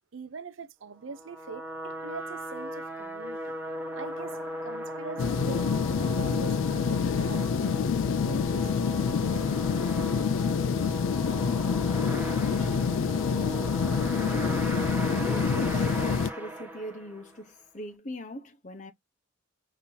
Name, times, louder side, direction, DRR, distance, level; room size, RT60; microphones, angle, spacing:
voice 1, 0.1-3.6 3.9-4.4 4.6-9.7, right 4 dB, 85° right, 0.6 m, -43 dB
sound 1, 1.1-17.4, right 1 dB, 10° right, 1.2 m, -37 dB
sound 2, 5.2-16.3, left 6 dB, 85° left, 0.3 m, -27 dB
voice 2, 14.3-14.8 15.2-18.9, equal, 40° left, 0.8 m, -40 dB
5.4 x 2.8 x 2.7 m
head